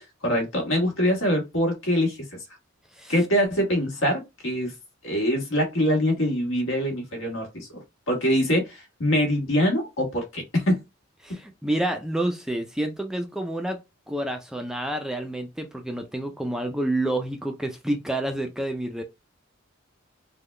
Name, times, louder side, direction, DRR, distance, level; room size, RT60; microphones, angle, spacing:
voice 1, 0.0-2.3 3.1-4.7 5.0-10.8, equal, 75° left, 1.4 m, -24 dB
voice 2, 11.2-13.8 14.1-19.0, right 1 dB, 5° right, 0.3 m, -29 dB
3.7 x 2.2 x 3.2 m
head